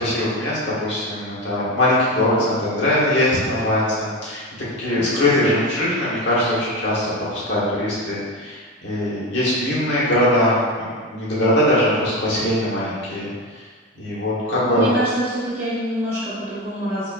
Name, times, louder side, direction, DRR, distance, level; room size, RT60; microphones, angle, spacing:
voice 1, 0.0-4.4 4.8-13.3 13.5-13.6 14.0-14.9, left 1 dB, 70° left, -8 dB, 1.2 m, -21 dB
voice 2, 14.6-17.1, right 1 dB, 30° right, -11 dB, 0.9 m, -25 dB
4.3 x 3.3 x 2.2 m, 1.5 s
head